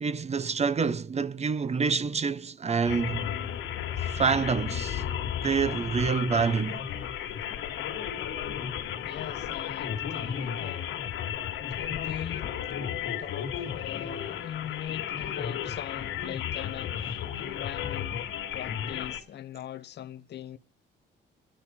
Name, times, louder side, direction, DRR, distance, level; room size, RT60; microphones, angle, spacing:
voice 1, 0.0-3.3 4.0-5.0 5.4-6.8, right 5 dB, 35° right, 0.8 m, -27 dB
sound 1, 2.8-19.2, left 9 dB, 85° left, 1.9 m, -33 dB
voice 2, 9.0-11.0 11.7-12.5 13.2-18.2 18.5-20.6, left 10 dB, 60° left, 0.8 m, -41 dB
27.5 x 10.5 x 4.3 m
cardioid pair, 90°, 20 cm